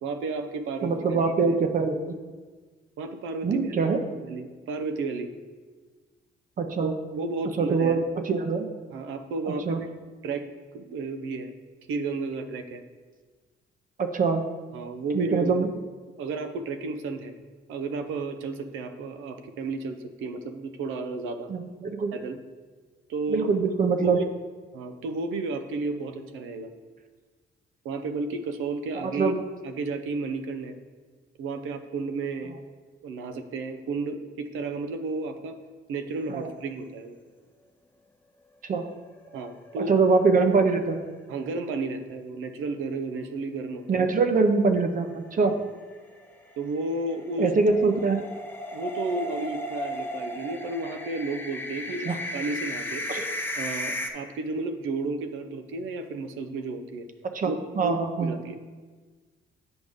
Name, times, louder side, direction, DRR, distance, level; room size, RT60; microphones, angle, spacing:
voice 1, 0.0-1.2 1.5-1.6 3.0-5.3 6.8-8.0 8.9-9.9 10.2-10.5 10.7-11.5 11.9-12.8 14.7-15.7 16.2-17.3 17.7-21.5 22.1-22.4 23.1-23.5 24.0-24.2 24.7-26.7 27.8-29.3 29.6-30.8 31.4-32.5 33.0-35.6 35.9-37.2 39.3-40.0 41.3-44.1 45.4-45.5 46.6-47.5 48.7-53.1 53.6-57.1 57.4-58.6, right 3 dB, 90° right, 7 dB, 0.6 m, -32 dB
voice 2, 0.8-2.2 3.4-4.0 6.6-6.9 7.6-8.0 8.2-8.7 9.7-9.8 14.0-14.4 15.1-15.7 21.5-22.1 23.3-24.2 29.0-29.4 36.3-36.5 38.6-38.8 39.9-41.0 43.9-45.5 47.4-48.2 52.1-52.2 53.1-53.2 57.3-58.3, right 4 dB, 45° right, 6 dB, 0.7 m, -23 dB
sound 1, 39.2-40.1 40.4-40.5 40.8-40.9 45.1-54.1, left 1 dB, 10° left, 0.7 m, -35 dB
8.0 x 5.1 x 3.6 m, 1.4 s
cardioid pair, 90°, 20 cm